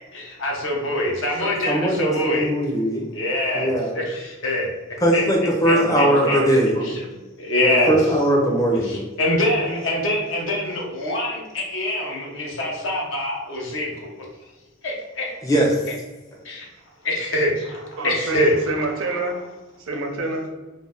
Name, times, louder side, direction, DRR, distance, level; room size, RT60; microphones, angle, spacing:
voice 1, 0.0-2.5 3.1-4.7 5.1-5.2 5.6-6.4 6.8-7.0 7.4-8.1 8.8-14.1 14.8-15.3 16.4-16.7 17.0-18.9, left 1 dB, 65° left, -1 dB, 0.7 m, -24 dB
voice 2, 1.7-3.1 3.5-4.0 5.0-6.8 7.6-9.0 15.4-15.8, right 1 dB, 15° left, -1 dB, 0.5 m, -20 dB
voice 3, 5.7-7.1 18.0-19.4 19.8-20.5, right 2 dB, 85° right, 2 dB, 0.5 m, -28 dB
2.6 x 2.1 x 3.4 m, 1.2 s
head